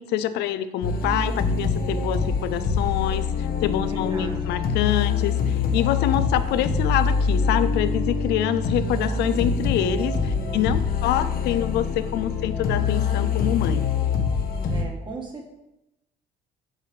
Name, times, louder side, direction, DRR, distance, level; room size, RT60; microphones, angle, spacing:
voice 1, 0.0-3.3 3.6-13.9, left 11 dB, 80° left, 12 dB, 0.5 m, -26 dB
sound 1, 0.8-14.8, left 5 dB, 60° left, 0.9 m, -25 dB
voice 2, 3.8-4.6 10.3-10.6 14.7-15.5, right 2 dB, 30° right, 1 dB, 1.4 m, -38 dB
7.3 x 3.2 x 5.1 m, 0.90 s
cardioid pair, 110°, 17 cm